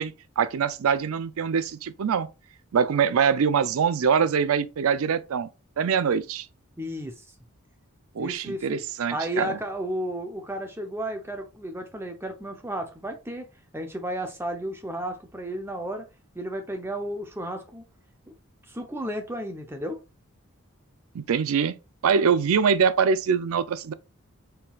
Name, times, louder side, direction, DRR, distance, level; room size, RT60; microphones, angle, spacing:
voice 1, 0.0-2.3 2.7-5.5 5.8-6.5 8.1-9.6 21.1-21.8 22.0-23.9, right 6 dB, 75° right, 0.4 m, -24 dB
voice 2, 6.8-7.2 8.2-8.8 9.1-13.5 13.7-16.0 16.3-17.8 18.3-18.4 18.7-20.0, right 1 dB, 10° right, 0.7 m, -33 dB
4.4 x 3.8 x 2.3 m
head